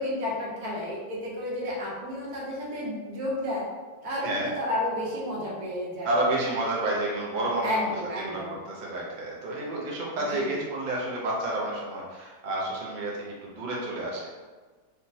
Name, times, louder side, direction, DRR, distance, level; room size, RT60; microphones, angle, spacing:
voice 1, 0.0-3.7 4.0-6.1 7.6-8.5 10.2-10.6, left 1 dB, 80° right, -4 dB, 1.3 m, -31 dB
voice 2, 6.0-7.9 8.2-14.3, right 1 dB, 55° right, -4 dB, 0.5 m, -30 dB
3.3 x 2.0 x 2.6 m, 1.4 s
omnidirectional pair, 1.6 m